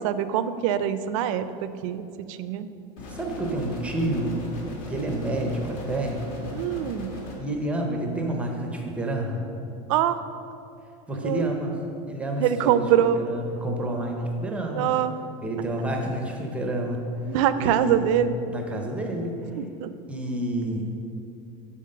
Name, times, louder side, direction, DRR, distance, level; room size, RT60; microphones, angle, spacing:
voice 1, 0.0-2.7 6.4-7.2 9.9-10.2 11.2-11.4 12.4-13.2 14.7-15.1 17.3-18.4 19.6-19.9, right 10 dB, 65° right, 12 dB, 0.4 m, -24 dB
sound 1, 3.0-7.4, left 2 dB, 45° left, 1.5 m, -38 dB
voice 2, 3.1-4.4 4.9-6.2 7.4-9.4 11.1-11.8 12.1-14.9 15.4-19.6 20.1-20.8, right 1 dB, 5° right, 1 dB, 0.5 m, -29 dB
7.8 x 3.9 x 6.5 m, 2.6 s
supercardioid pair, 170°, 18 cm